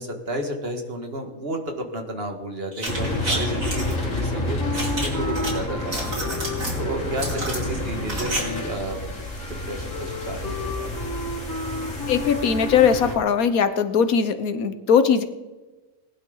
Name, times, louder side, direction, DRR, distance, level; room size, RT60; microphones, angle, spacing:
voice 1, 0.0-4.6 5.0-6.5 6.7-11.0, right 1 dB, 45° right, 4 dB, 2.0 m, -32 dB
sound 1, 2.7-3.9 4.7-5.5 5.8-6.8 7.2-8.4 8.7-8.8, right 1 dB, 70° right, 3.8 m, -30 dB
sound 2, 2.9-13.2, left 1 dB, 65° left, 2.9 m, -30 dB
Wind instrument woodwind instrument, 4.6-13.0, left 2 dB, 15° left, 1.1 m, -34 dB
voice 2, 12.1-15.2, left 7 dB, 85° left, 10 dB, 1.5 m, -20 dB
19.5 x 11.5 x 4.0 m, 1.1 s
omnidirectional pair, 1.5 m